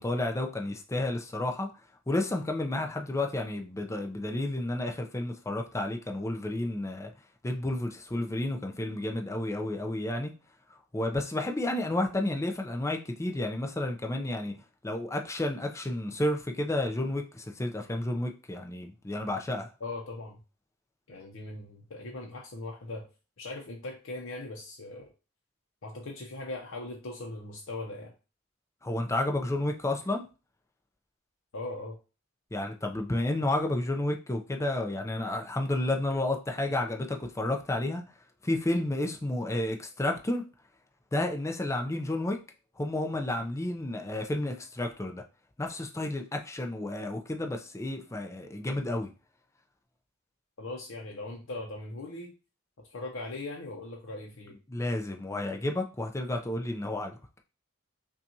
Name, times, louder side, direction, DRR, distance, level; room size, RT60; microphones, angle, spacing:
voice 1, 0.0-1.7 2.1-7.1 7.4-10.3 10.9-14.5 14.8-19.7 28.8-30.2 32.5-38.0 38.4-40.4 41.1-42.4 42.8-45.2 45.6-49.1 54.7-57.2, left 1 dB, 15° left, 0.5 m, -31 dB
voice 2, 19.8-20.4 21.1-23.1 23.4-25.1 25.8-28.1 31.5-32.0 50.6-52.3 52.8-54.6, left 2 dB, 65° left, 0.7 m, -39 dB
5.5 x 2.4 x 2.7 m
head